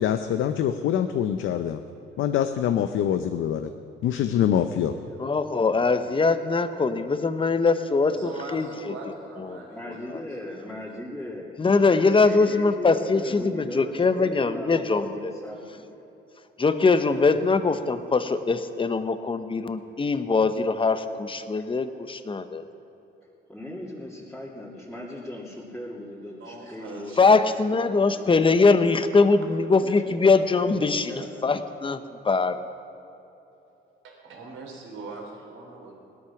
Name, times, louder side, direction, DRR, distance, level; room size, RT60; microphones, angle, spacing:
voice 1, 0.0-1.8 2.2-3.7 4.0-4.9, left 9 dB, 80° left, 8 dB, 0.7 m, -24 dB
voice 2, 4.6-6.0 9.7-11.5 11.8-15.9 23.5-27.7 28.1-28.6 29.8-31.4, left 1 dB, ahead, -8 dB, 2.7 m, -39 dB
voice 3, 5.2-8.9 9.4-10.2 11.6-15.3 16.6-22.6 27.2-32.6, left 4 dB, 25° left, 10 dB, 1.0 m, -22 dB
voice 4, 8.1-10.7 26.4-27.3 34.0-35.9, right 3 dB, 75° right, 0 dB, 3.7 m, -41 dB
18.0 x 13.0 x 5.9 m, 3.0 s
cardioid pair, 90°, 20 cm